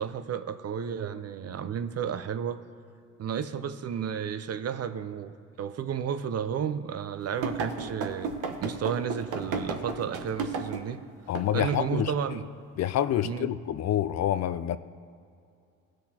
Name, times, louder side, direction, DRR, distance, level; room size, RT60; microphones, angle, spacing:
voice 1, 0.0-2.6 3.2-8.3 8.6-11.0 11.5-12.5 13.2-13.6, right 8 dB, 45° right, 10 dB, 0.6 m, -32 dB
sound 1, 7.4-10.9 11.4-11.5 11.7-11.9, right 4 dB, 65° right, 1.1 m, -33 dB
voice 2, 11.3-12.1 12.8-14.8, left 11 dB, 55° left, 13 dB, 0.5 m, -27 dB
16.5 x 6.3 x 2.9 m, 2.4 s
supercardioid pair, 70°, 33 cm